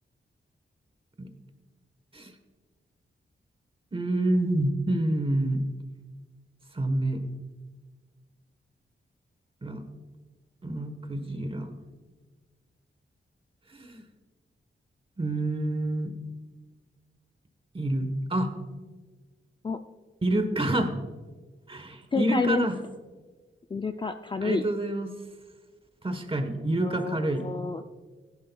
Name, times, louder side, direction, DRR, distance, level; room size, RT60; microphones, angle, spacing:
voice 1, 3.9-5.6 6.7-7.2 9.6-9.8 10.6-11.7 13.7-14.0 15.2-16.1 17.7-18.5 20.2-20.9 21.7-22.8 24.4-25.2 26.0-27.5, right 1 dB, 25° right, 7 dB, 1.1 m, -28 dB
voice 2, 22.1-22.7 23.7-24.6 26.8-27.8, left 4 dB, 25° left, 7 dB, 0.4 m, -29 dB
16.0 x 11.0 x 2.3 m, 1.4 s
wide cardioid pair, 135°, 21 cm